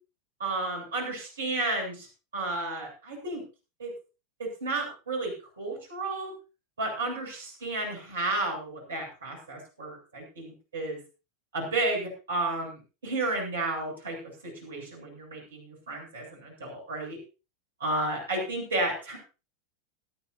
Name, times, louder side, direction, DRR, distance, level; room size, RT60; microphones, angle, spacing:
voice 1, 0.4-2.1 2.3-3.4 3.8-3.9 4.4-6.3 6.8-11.0 11.5-14.2 14.4-17.2 17.8-19.2, right 2 dB, 75° right, 0 dB, 7.9 m, -32 dB
19.0 x 13.0 x 2.8 m, 0.32 s
figure-of-eight pair, 85°, 0 cm